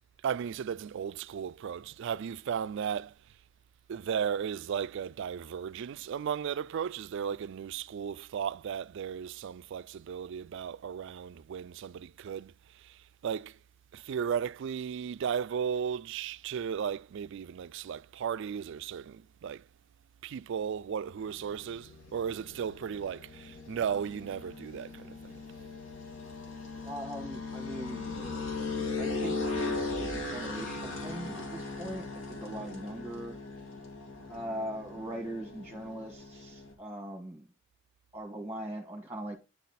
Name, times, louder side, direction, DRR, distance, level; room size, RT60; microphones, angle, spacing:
voice 1, 0.2-3.1 3.9-13.6 13.9-19.6 20.2-25.4, right 7 dB, 65° right, 0.3 m, -35 dB
sound 1, 21.2-36.7, left 3 dB, 70° left, 2.1 m, -38 dB
voice 2, 26.8-28.0 29.0-33.3 34.3-37.5 38.1-39.4, right 1 dB, 10° right, 1.4 m, -40 dB
9.2 x 4.1 x 4.0 m
head